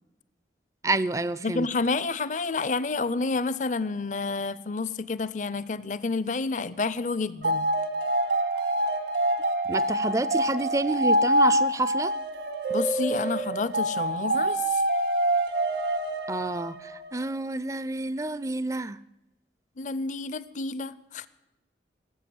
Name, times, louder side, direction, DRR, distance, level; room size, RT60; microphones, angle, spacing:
voice 1, 0.8-1.7 9.7-12.1 16.3-19.0, right 2 dB, 15° right, 17 dB, 0.4 m, -29 dB
voice 2, 1.4-7.7 12.7-14.8 19.8-21.3, left 3 dB, 45° left, 17 dB, 0.5 m, -29 dB
sound 1, 7.4-17.2, right 1 dB, 75° right, 1.9 m, -26 dB
18.0 x 8.0 x 7.8 m, 0.95 s
head